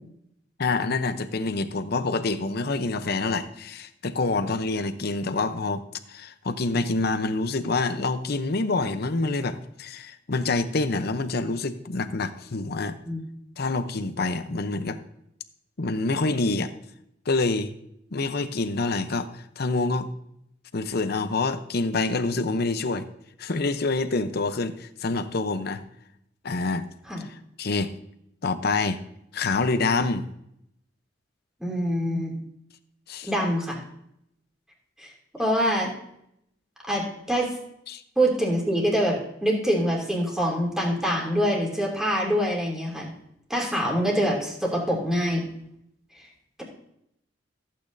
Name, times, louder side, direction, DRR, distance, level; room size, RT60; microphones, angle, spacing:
voice 1, 0.6-13.0 13.6-15.0 15.8-16.7 17.3-17.7 18.1-20.1 20.7-23.1 23.4-25.8 26.4-26.9 27.2-27.9 28.4-29.0 29.3-30.3 33.1-33.3 37.9-38.0, left 3 dB, 60° left, 10 dB, 0.8 m, -27 dB
voice 2, 31.6-32.3 33.2-33.8 35.0-35.9 36.8-37.5 38.2-43.1 43.5-45.4, equal, 5° right, -3 dB, 2.8 m, -25 dB
15.0 x 8.6 x 2.7 m, 0.76 s
head